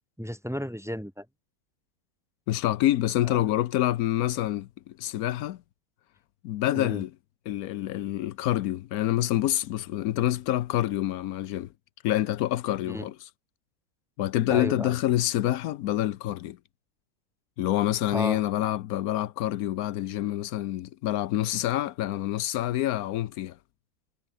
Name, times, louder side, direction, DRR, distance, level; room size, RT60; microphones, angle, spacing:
voice 1, 0.2-1.2 3.2-3.4 6.7-7.0 12.9-13.1 14.5-15.0 18.1-18.4, equal, ahead, 3.0 m, -33 dB
voice 2, 2.5-5.6 6.4-7.1 7.5-11.7 12.0-13.2 14.2-16.6 17.6-23.6, left 13 dB, 85° left, 1.1 m, -27 dB
omnidirectional pair, 1.5 m